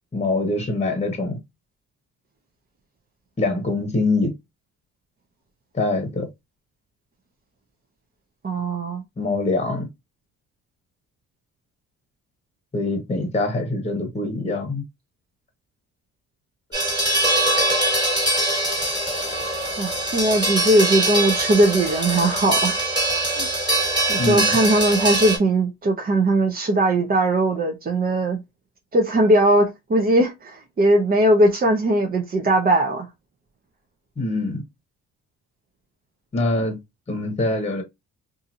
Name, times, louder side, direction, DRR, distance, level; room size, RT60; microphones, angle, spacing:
voice 1, 0.1-1.4 3.4-4.3 5.7-6.3 9.2-9.9 12.7-14.8 24.2-24.6 34.2-34.6 36.3-36.8 37.1-37.8, left 2 dB, 20° left, 1.0 m, -24 dB
voice 2, 8.4-9.0 19.8-22.8 23.3-23.5 24.1-28.4 28.9-33.1, right 1 dB, 30° right, 0.6 m, -19 dB
sound 1, 16.7-25.4, right 1 dB, 15° right, 1.6 m, -22 dB
2.7 x 2.5 x 2.6 m
cardioid pair, 90°, 30 cm